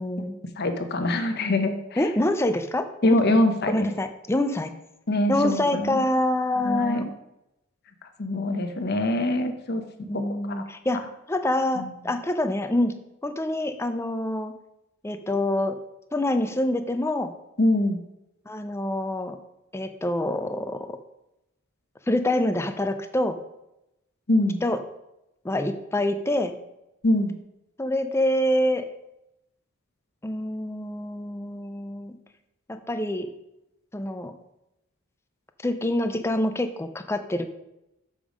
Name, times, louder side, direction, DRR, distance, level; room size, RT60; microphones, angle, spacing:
voice 1, 0.0-0.4 2.0-3.2 3.7-4.7 5.3-7.0 10.1-11.0 11.3-12.9 13.2-14.5 15.0-15.8 16.1-17.3 18.5-19.4 19.7-21.0 22.1-23.4 24.6-24.8 25.4-26.5 27.8-28.9 30.2-32.2 32.7-33.3 33.9-34.3 35.6-37.5, left 1 dB, 15° left, 8 dB, 0.5 m, -26 dB
voice 2, 0.6-2.0 3.0-3.9 5.1-6.0 6.6-7.1 8.2-9.8 10.1-10.6 11.8-11.9 17.6-18.0 24.3-24.6 27.0-27.3, left 1 dB, 50° left, 7 dB, 0.8 m, -24 dB
6.8 x 5.4 x 5.0 m, 0.88 s
head